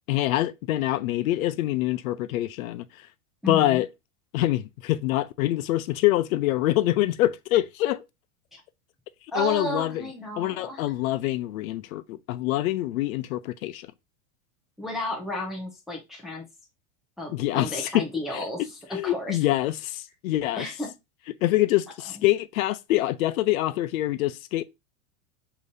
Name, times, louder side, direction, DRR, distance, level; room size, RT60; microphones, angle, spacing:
voice 1, 0.1-2.8 3.5-3.9 4.3-8.0 9.3-10.0 10.4-13.9 17.3-18.0 18.3-20.7 21.4-24.6, left 15 dB, 90° left, 0.6 m, -25 dB
voice 2, 3.4-3.8 8.5-8.6 9.3-10.9 14.8-16.4 17.2-18.6 18.9-19.4 20.6-20.9 22.1-22.2, equal, ahead, 0.4 m, -33 dB
4.9 x 2.9 x 2.6 m
supercardioid pair, 160°, 41 cm